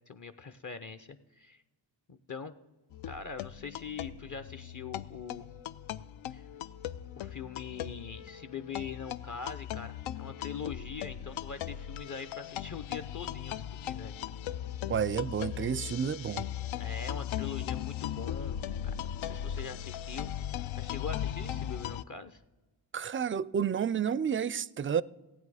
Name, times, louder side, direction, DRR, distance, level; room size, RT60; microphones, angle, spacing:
voice 1, 0.1-1.6 2.1-2.5 3.0-5.5 6.3-6.5 7.2-14.1 16.8-20.3 20.8-22.4, left 5 dB, 40° left, 0.7 m, -42 dB
sound 1, 2.9-22.0, left 10 dB, 80° left, 0.5 m, -38 dB
voice 2, 14.9-16.5 22.9-25.0, right 7 dB, 30° right, 0.3 m, -30 dB
15.5 x 9.0 x 4.9 m
cardioid pair, 55°, 47 cm